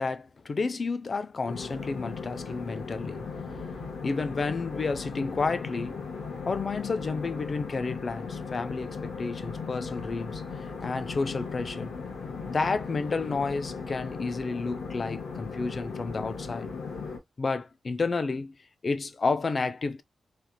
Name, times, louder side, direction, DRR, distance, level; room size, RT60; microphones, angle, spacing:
voice 1, 0.0-3.2 4.0-6.0 6.5-10.4 10.8-11.9 12.5-16.7 17.4-18.6 18.8-20.0, left 4 dB, 40° left, 0.4 m, -31 dB
sound 1, 1.4-17.2, left 5 dB, 90° left, 1.1 m, -37 dB
3.3 x 2.8 x 2.2 m
wide cardioid pair, 135°, 0 cm